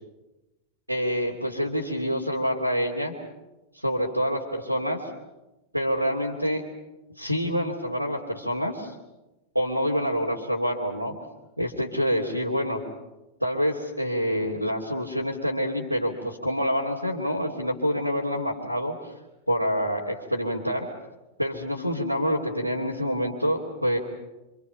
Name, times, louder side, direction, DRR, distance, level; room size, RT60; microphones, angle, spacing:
voice 1, 0.9-3.1 3.7-5.1 5.7-6.6 7.2-8.9 9.5-11.1 11.6-12.8 13.4-19.1 19.5-20.9 21.4-24.0, equal, 90° left, -5 dB, 2.9 m, -27 dB
28.0 x 27.0 x 5.8 m, 1.0 s
figure-of-eight pair, 90°, 0 cm